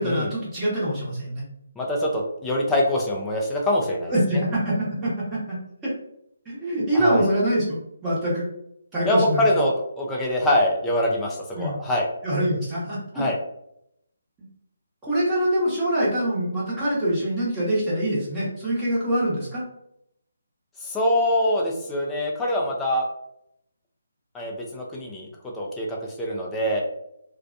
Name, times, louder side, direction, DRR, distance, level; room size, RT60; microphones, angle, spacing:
voice 1, 0.0-1.4 4.1-5.6 5.8-5.9 6.4-7.8 8.0-8.5 8.9-9.4 11.5-11.7 12.2-13.2 15.0-19.6, right 1 dB, 10° right, -9 dB, 1.1 m, -24 dB
voice 2, 1.8-4.1 6.9-7.3 9.0-12.1 13.1-13.4 20.8-23.1 24.3-25.3 25.5-26.8, left 1 dB, 10° left, -2 dB, 0.5 m, -24 dB
2.5 x 2.2 x 2.5 m, 0.76 s
hypercardioid pair, 160°, 0 cm